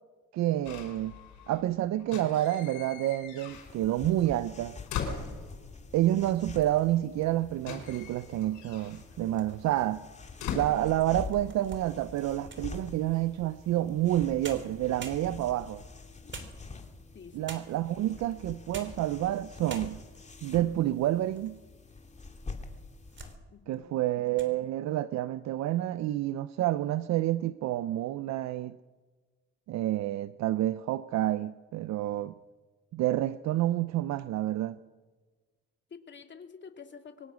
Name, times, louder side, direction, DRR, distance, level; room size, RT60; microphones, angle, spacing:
voice 1, 0.3-1.2 1.5-4.8 5.9-10.1 10.5-15.8 17.3-20.0 20.4-21.6 23.7-28.8 29.7-32.3 32.9-34.8, right 14 dB, 65° right, 0.6 m, -29 dB
sound 1, 0.6-1.6 2.0-4.0 4.2-5.8 6.8-6.9 7.1-11.6 11.9-12.3, left 7 dB, 80° left, 5.1 m, -41 dB
sound 2, 3.5-23.4, left 4 dB, 25° left, 2.6 m, -46 dB
sound 3, 9.1-9.9 10.5-10.6 11.1-12.8 14.1-14.2 14.4-15.6 16.3-17.0 17.5-17.9 18.5-19.1 19.4-19.5 19.7-20.2 20.8-21.6 21.9-22.0 22.7-23.4 23.7-24.0 24.3-24.6, right 5 dB, 40° right, 3.1 m, -46 dB
voice 2, 17.1-17.5 23.5-24.0 35.9-37.3, left 6 dB, 40° left, 2.7 m, -49 dB
23.5 x 18.0 x 6.3 m
supercardioid pair, 85°, 29 cm